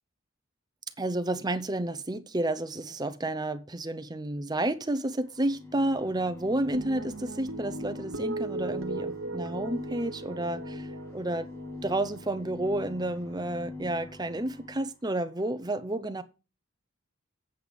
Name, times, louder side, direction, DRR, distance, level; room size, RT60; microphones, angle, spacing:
voice 1, 1.0-11.5 11.8-16.2, right 1 dB, 20° right, 0.8 m, -31 dB
sound 1, 5.3-15.0, left 3 dB, 10° left, 1.5 m, -43 dB
sound 2, 6.7-13.3, right 3 dB, 75° right, 1.4 m, -39 dB
7.9 x 7.8 x 5.3 m
head